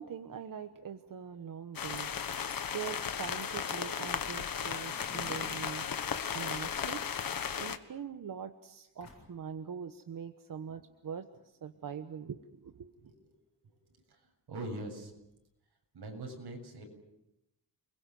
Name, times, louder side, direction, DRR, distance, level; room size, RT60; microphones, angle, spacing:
voice 1, 0.0-5.9 6.3-7.1 7.6-12.9, right 7 dB, 55° right, 8 dB, 1.2 m, -43 dB
sound 1, 1.7-7.8, left 7 dB, 60° left, 1.5 m, -35 dB
sound 2, 4.7-6.1 6.6-7.7 9.0-9.4, left 3 dB, 45° left, 7.8 m, -51 dB
voice 2, 12.9-13.3 14.1-14.2 14.5-15.1 15.9-16.8, right 2 dB, 80° right, 3 dB, 7.5 m, -42 dB
29.5 x 22.5 x 7.7 m, 0.89 s
wide cardioid pair, 175°, 39 cm